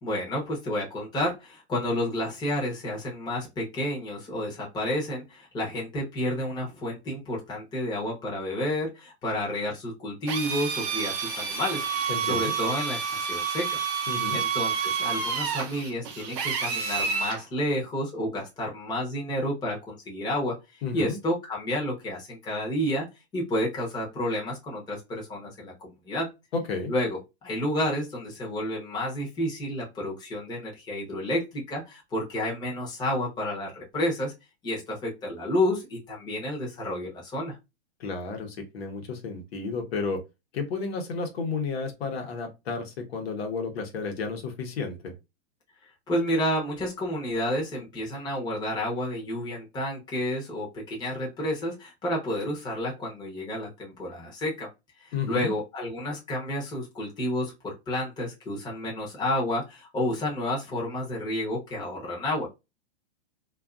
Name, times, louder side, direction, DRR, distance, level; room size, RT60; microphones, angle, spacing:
voice 1, 0.0-13.8 14.3-23.1 23.3-26.3 26.9-34.3 34.6-37.5 46.1-54.7 55.0-62.5, left 1 dB, 15° left, -3 dB, 0.8 m, -30 dB
Drill, 10.3-17.4, right 6 dB, 35° right, 0.6 m, -29 dB
voice 2, 12.1-12.5 14.1-14.4 20.8-21.2 26.5-26.9 38.0-40.2 40.5-45.1 55.1-55.5, left 4 dB, 70° left, 4 dB, 1.0 m, -32 dB
2.5 x 2.5 x 2.3 m, 0.24 s
hypercardioid pair, 145°, 32 cm